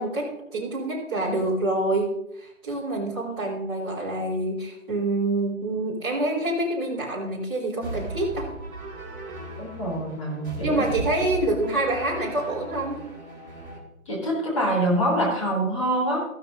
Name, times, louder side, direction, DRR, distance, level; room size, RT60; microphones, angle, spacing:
voice 1, 0.0-2.1 2.3-8.5 10.6-13.0, right 2 dB, 20° right, -7 dB, 3.7 m, -26 dB
sound 1, 7.8-13.8, right 2 dB, 35° right, 4.3 m, -36 dB
voice 2, 9.6-10.8 14.1-16.2, right 1 dB, 25° left, -4 dB, 3.6 m, -25 dB
14.5 x 13.5 x 2.6 m, 0.83 s
figure-of-eight pair, 170°, 43 cm